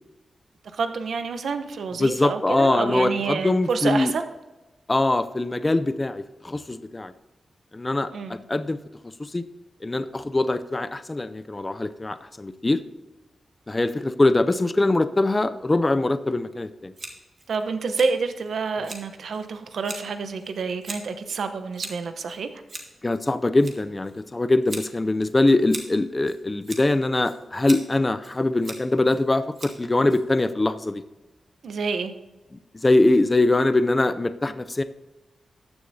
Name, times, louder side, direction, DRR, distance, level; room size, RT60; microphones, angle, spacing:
voice 1, 0.7-4.2 8.1-8.4 17.5-22.5 31.6-32.1, right 4 dB, 80° right, 8 dB, 0.9 m, -28 dB
voice 2, 2.0-4.1 4.9-7.1 7.7-8.8 9.2-9.5 9.8-12.8 13.7-16.9 23.0-31.0 32.7-34.8, left 2 dB, 20° left, 11 dB, 0.4 m, -22 dB
Scissors, 16.9-30.7, right 2 dB, 35° right, 1.7 m, -42 dB
14.5 x 9.9 x 2.7 m, 1.1 s
wide cardioid pair, 160°, 0 cm